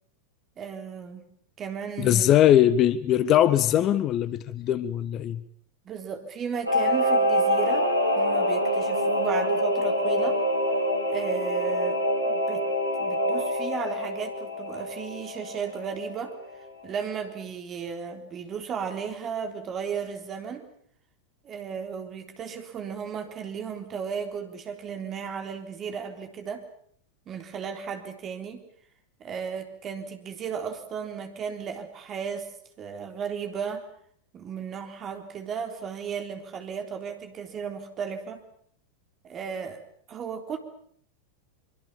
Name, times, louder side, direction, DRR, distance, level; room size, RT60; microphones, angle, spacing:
voice 1, 0.6-1.3 1.6-2.3 5.8-7.9 8.2-10.4 11.1-12.7 13.0-16.3 16.8-20.7 21.4-26.6 27.3-28.6 29.2-32.5 32.8-33.9 34.3-38.4 39.2-39.8 40.1-40.6, right 6 dB, 30° right, 6 dB, 3.8 m, -35 dB
voice 2, 2.0-5.4, left 11 dB, 35° left, 17 dB, 1.0 m, -21 dB
Singing / Musical instrument, 6.7-16.7 17.0-17.1, equal, 90° right, 3.3 m, -26 dB
24.5 x 23.5 x 7.3 m, 0.64 s
figure-of-eight pair, 90°, 0 cm